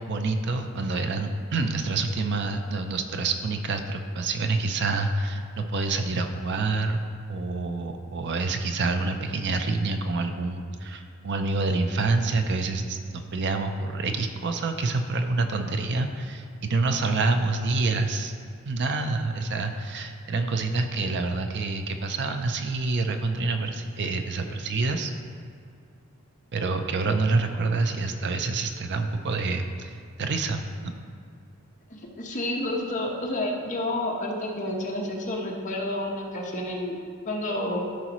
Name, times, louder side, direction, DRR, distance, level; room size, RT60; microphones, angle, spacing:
voice 1, 0.0-7.0 7.3-13.0 13.3-18.3 18.7-25.1 26.5-30.9, right 3 dB, 50° right, 6 dB, 0.5 m, -27 dB
voice 2, 31.9-37.0 37.2-37.8, left 1 dB, 35° left, -2 dB, 1.2 m, -30 dB
13.5 x 5.1 x 3.1 m, 2.3 s
head